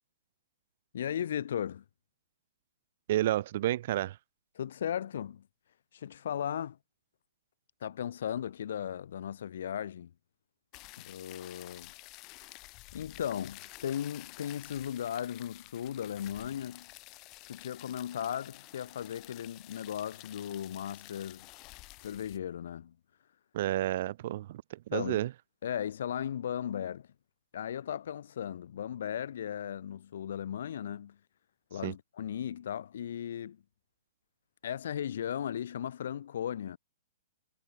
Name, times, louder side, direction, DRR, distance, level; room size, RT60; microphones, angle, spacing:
voice 1, 0.9-1.8 4.5-5.4 5.9-6.8 7.8-10.1 11.0-11.9 12.9-16.9 17.5-21.5 22.0-22.9 24.9-25.2 25.6-27.1 27.5-31.2 31.7-33.6 34.6-36.8, left 9 dB, 60° left, 0.8 m, -36 dB
voice 2, 3.1-4.2 23.5-25.3 31.8-31.9, right 14 dB, 45° right, 0.8 m, -30 dB
sound 1, 10.7-22.4, left 24 dB, 25° left, 2.3 m, -51 dB
hypercardioid pair, 165°, 0 cm